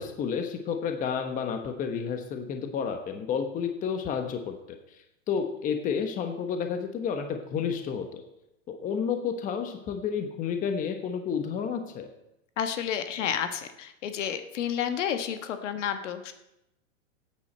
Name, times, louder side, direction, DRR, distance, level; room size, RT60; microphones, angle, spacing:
voice 1, 0.0-4.8 5.3-8.2 8.7-12.1, left 7 dB, 20° left, 6 dB, 1.1 m, -31 dB
voice 2, 12.6-16.3, left 8 dB, 65° left, 8 dB, 1.4 m, -31 dB
16.5 x 9.1 x 4.4 m, 0.87 s
hypercardioid pair, 145°, 40 cm